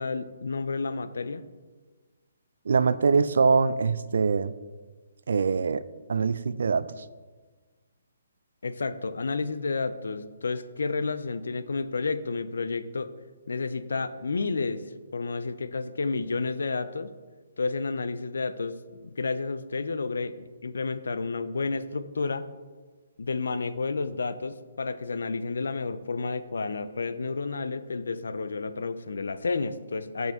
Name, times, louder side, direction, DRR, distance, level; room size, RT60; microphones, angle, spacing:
voice 1, 0.0-1.4 8.6-13.1 13.5-14.8 15.1-17.1 17.6-22.5 23.2-30.3, left 4 dB, 85° left, 12 dB, 0.5 m, -31 dB
voice 2, 2.7-4.5 5.3-5.8 6.1-6.9, right 5 dB, 60° right, 15 dB, 0.3 m, -23 dB
8.8 x 5.3 x 3.6 m, 1.4 s
hypercardioid pair, 175°, 0 cm